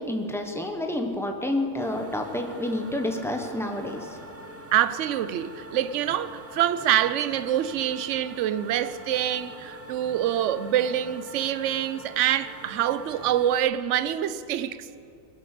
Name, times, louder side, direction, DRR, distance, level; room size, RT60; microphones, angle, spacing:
voice 1, 0.0-4.1, left 1 dB, ahead, 0.8 m, -29 dB
sound 1, 1.8-13.6, right 1 dB, 20° right, 0.4 m, -44 dB
voice 2, 4.7-14.9, right 11 dB, 65° right, 0.8 m, -26 dB
20.5 x 8.4 x 6.7 m
omnidirectional pair, 1.7 m